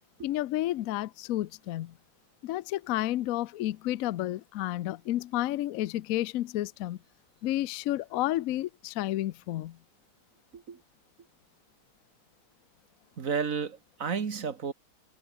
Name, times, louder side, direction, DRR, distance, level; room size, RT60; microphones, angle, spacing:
voice 1, 0.2-2.0 2.4-7.0 7.4-9.8, left 14 dB, 70° left, 0.8 m, -31 dB
voice 2, 13.2-14.7, right 6 dB, 45° right, 1.9 m, -32 dB
omnidirectional pair, 2.1 m